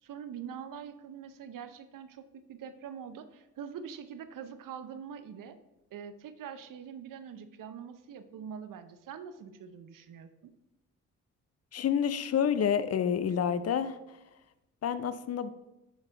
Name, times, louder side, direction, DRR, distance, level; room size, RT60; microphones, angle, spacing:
voice 1, 0.0-5.6 5.9-10.5, right 7 dB, 55° right, 11 dB, 0.7 m, -44 dB
voice 2, 11.7-14.2 14.8-15.5, left 8 dB, 40° left, 14 dB, 0.5 m, -29 dB
6.1 x 4.0 x 3.8 m, 0.96 s
hypercardioid pair, 45°, 40 cm